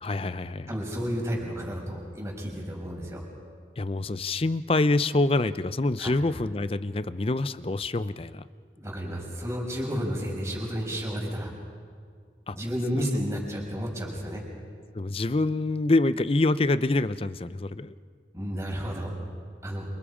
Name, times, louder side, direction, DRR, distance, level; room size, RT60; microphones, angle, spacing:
voice 1, 0.0-0.7 3.8-8.5 12.5-12.6 12.9-13.0 14.9-17.9, left 2 dB, 30° left, 14 dB, 0.6 m, -26 dB
voice 2, 0.7-3.2 6.0-6.1 8.8-11.5 12.5-14.4 18.3-19.1 19.6-19.9, equal, 15° right, -1 dB, 5.5 m, -31 dB
28.5 x 28.0 x 5.0 m, 2.1 s
head